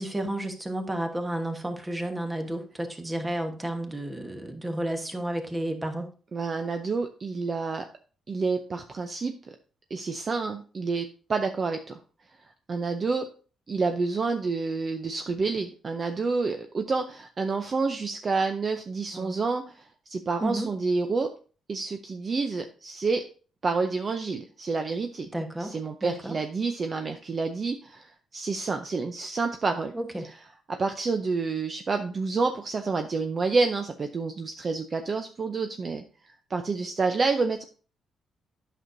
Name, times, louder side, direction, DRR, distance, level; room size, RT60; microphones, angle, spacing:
voice 1, 0.0-6.1 19.1-19.3 20.4-20.7 25.3-25.8 26.0-26.4 29.9-30.2, right 1 dB, 15° right, 5 dB, 1.1 m, -32 dB
voice 2, 6.3-7.9 8.3-9.3 9.9-12.0 12.7-13.3 13.7-21.3 21.7-23.2 23.6-25.3 25.6-29.9 30.2-30.4 30.7-37.6, right 4 dB, 35° right, 6 dB, 0.5 m, -29 dB
9.1 x 6.1 x 2.6 m, 0.38 s
cardioid pair, 115°, 0 cm